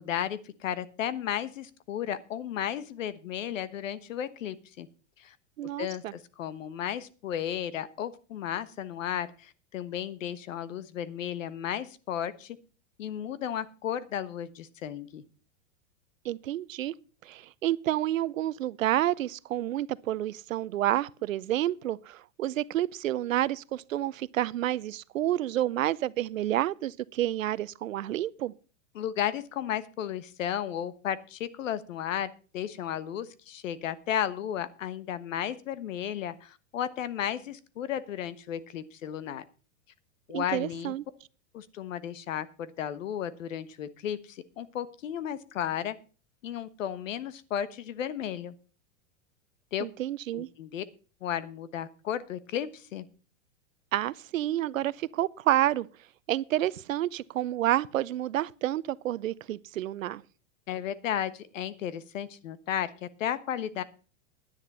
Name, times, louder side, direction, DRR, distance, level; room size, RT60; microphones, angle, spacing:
voice 1, 0.0-4.9 5.2-5.3 5.8-12.6 13.0-15.2 28.9-39.5 40.3-40.9 41.5-46.0 46.4-48.5 49.7-49.9 50.3-50.8 51.2-53.1 60.7-63.8, left 10 dB, 80° left, 1.3 m, -34 dB
voice 2, 5.6-6.1 16.2-16.9 17.2-28.5 40.3-41.0 49.8-50.5 53.9-55.9 56.3-60.2, right 13 dB, 90° right, 0.7 m, -29 dB
10.5 x 9.9 x 5.4 m
hypercardioid pair, 115°, 38 cm